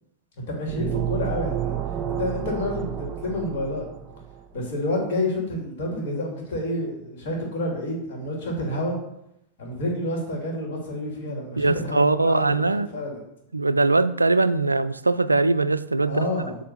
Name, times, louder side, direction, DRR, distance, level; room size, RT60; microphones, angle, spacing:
voice 1, 0.4-1.8 2.1-3.9 4.5-9.0 9.6-12.6 12.9-13.2 16.1-16.6, left 1 dB, 50° left, 2.5 m, -29 dB
sound 1, 0.7-4.4, right 9 dB, 25° right, 0.6 m, -30 dB
voice 2, 11.3-12.9 13.5-16.3, right 3 dB, 80° right, 0.3 m, -21 dB
7.8 x 3.3 x 6.4 m
figure-of-eight pair, 90°, 0 cm